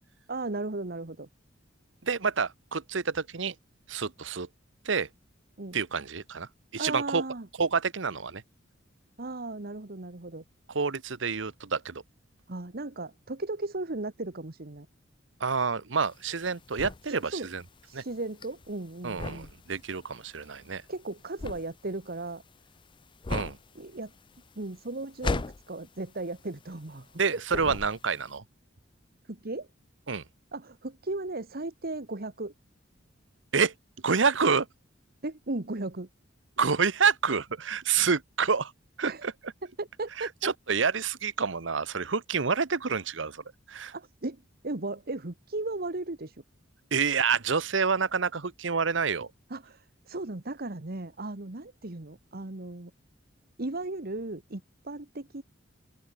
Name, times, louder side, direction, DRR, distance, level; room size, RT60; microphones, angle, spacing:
voice 1, 0.3-1.3 5.6-5.8 6.8-7.5 9.2-10.4 12.5-14.9 17.1-17.5 17.8-19.5 20.9-22.4 23.7-24.1 24.6-27.4 29.3-29.7 30.5-32.5 35.2-36.1 39.0-39.3 39.8-40.5 43.9-46.3 49.5-52.9 53.6-55.4, right 2 dB, 50° right, 1.4 m, -36 dB
voice 2, 2.0-3.5 3.9-4.5 4.8-5.1 5.7-7.2 7.6-8.4 10.7-12.0 15.4-17.6 17.9-18.0 19.0-20.8 23.3-23.6 27.2-28.4 30.1-30.2 33.5-33.7 34.0-34.7 36.6-38.7 39.0-39.3 40.2-43.9 46.9-49.3, right 5 dB, 70° right, 1.0 m, -28 dB
sound 1, 16.0-27.2 27.5-28.3, left 3 dB, 25° left, 0.4 m, -37 dB
open air
head